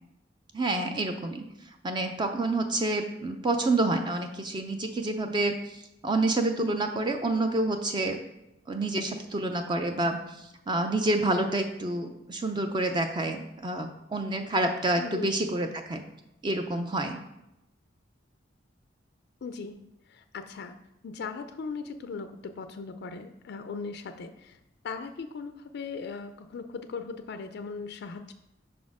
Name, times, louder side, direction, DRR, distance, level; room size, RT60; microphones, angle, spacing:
voice 1, 0.5-1.4 1.8-8.2 8.7-10.2 10.7-16.0 16.4-17.2, right 2 dB, 25° right, 5 dB, 0.4 m, -28 dB
voice 2, 15.0-15.3 19.4-20.8 21.0-28.3, left 4 dB, 60° left, 8 dB, 0.4 m, -39 dB
5.8 x 4.2 x 4.7 m, 0.88 s
head